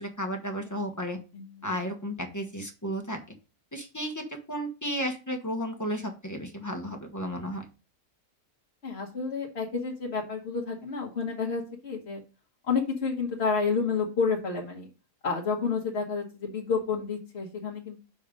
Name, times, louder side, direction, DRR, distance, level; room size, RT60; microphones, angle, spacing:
voice 1, 0.0-1.2 1.6-3.2 3.7-7.7, equal, 15° left, 4 dB, 1.0 m, -33 dB
voice 2, 8.8-12.2 12.7-14.9 15.2-18.0, left 5 dB, 45° left, -2 dB, 1.4 m, -30 dB
5.7 x 5.4 x 5.1 m, 0.33 s
omnidirectional pair, 1.6 m